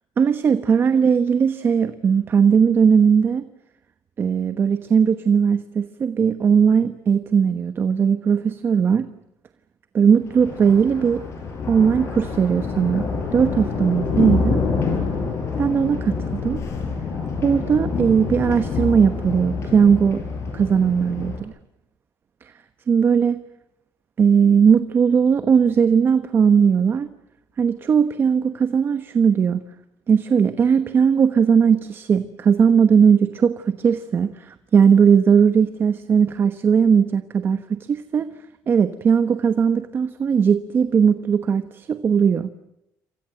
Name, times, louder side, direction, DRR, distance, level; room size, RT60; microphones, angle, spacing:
voice 1, 0.2-3.5 4.2-9.1 9.9-11.3 11.7-13.0 13.3-14.6 15.6-16.6 17.4-20.2 20.5-21.5 22.9-23.4 24.2-27.1 27.6-29.6 30.1-38.3 38.7-42.5, right 6 dB, 35° right, 10 dB, 1.1 m, -18 dB
Thunder, 10.2-21.4, left 4 dB, 45° left, 7.5 m, -27 dB
28.5 x 25.0 x 7.8 m, 0.82 s
cardioid pair, 155°, 7 cm